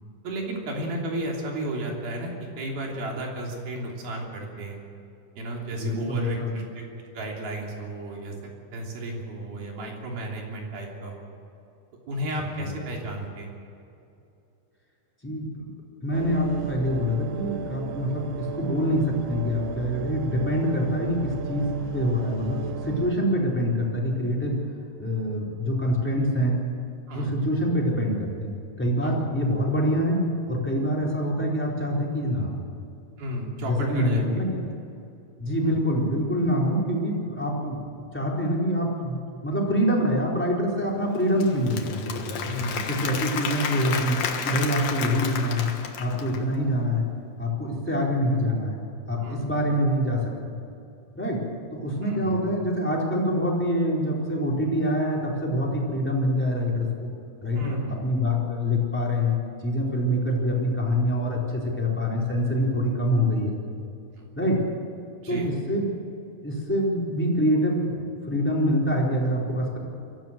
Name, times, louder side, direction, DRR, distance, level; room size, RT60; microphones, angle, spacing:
voice 1, 0.2-4.8 5.4-6.9 7.1-11.3 12.1-13.5 27.1-27.3 29.0-29.3 33.2-34.2 35.6-35.8 42.4-42.9 46.1-46.4 49.2-49.5 52.1-52.4 57.5-58.0 64.2-64.3 65.2-65.5, right 1 dB, 55° right, -1 dB, 4.9 m, -33 dB
voice 2, 5.7-6.6 12.6-12.7 15.2-15.7 16.0-24.6 25.0-26.6 27.1-32.6 33.6-34.7 35.4-39.2 39.4-42.4 42.9-45.7 46.0-47.1 47.4-48.8 49.1-50.3 51.1-51.4 51.7-56.9 57.4-59.3 59.6-63.6 64.3-64.6 65.3-65.9 66.4-69.8, equal, 5° left, -4 dB, 3.5 m, -25 dB
sound 1, 16.1-23.1, right 6 dB, 80° right, 1.8 m, -35 dB
Applause / Crowd, 41.1-46.5, left 6 dB, 60° left, 1.9 m, -31 dB
23.0 x 15.5 x 7.6 m, 2.7 s
omnidirectional pair, 5.3 m